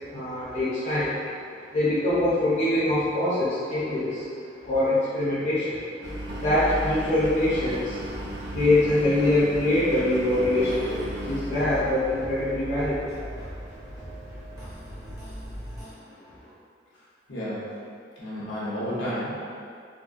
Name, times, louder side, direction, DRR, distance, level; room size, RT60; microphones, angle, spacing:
voice 1, 0.1-1.4 1.7-13.2, left 1 dB, 40° left, -11 dB, 0.6 m, -24 dB
Engine, 6.0-15.8, equal, 75° right, 0.5 m, -36 dB
Solomon house loop, 10.4-15.9, right 1 dB, 15° right, 0.7 m, -45 dB
voice 2, 17.3-17.8 18.2-19.4, equal, 80° left, -9 dB, 1.0 m, -31 dB
3.9 x 2.2 x 2.4 m, 2.4 s
head